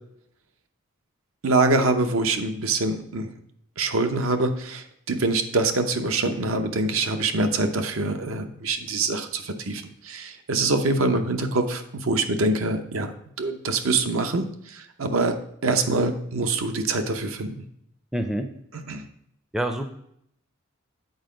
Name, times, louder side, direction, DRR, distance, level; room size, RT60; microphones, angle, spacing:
voice 1, 1.4-3.3 3.8-15.4 15.6-17.6 18.7-19.0, right 3 dB, 80° right, 7 dB, 0.8 m, -25 dB
voice 2, 18.1-18.5 19.5-19.9, right 1 dB, ahead, 6 dB, 0.4 m, -26 dB
8.0 x 4.5 x 5.0 m, 0.73 s
head